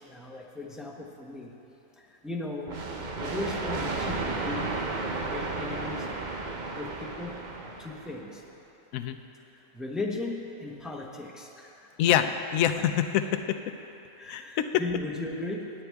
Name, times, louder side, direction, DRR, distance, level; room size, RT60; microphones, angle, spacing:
voice 1, 0.0-1.5 2.2-2.8 3.2-4.8 5.1-6.1 6.7-8.4 9.7-12.3 14.2-15.7, left 2 dB, ahead, -1 dB, 0.7 m, -37 dB
sound 1, 2.7-8.2, right 3 dB, 40° right, 0.8 m, -33 dB
voice 2, 12.0-13.6 14.3-14.7, left 10 dB, 80° left, 9 dB, 1.0 m, -26 dB
18.5 x 8.8 x 3.5 m, 2.9 s
omnidirectional pair, 1.4 m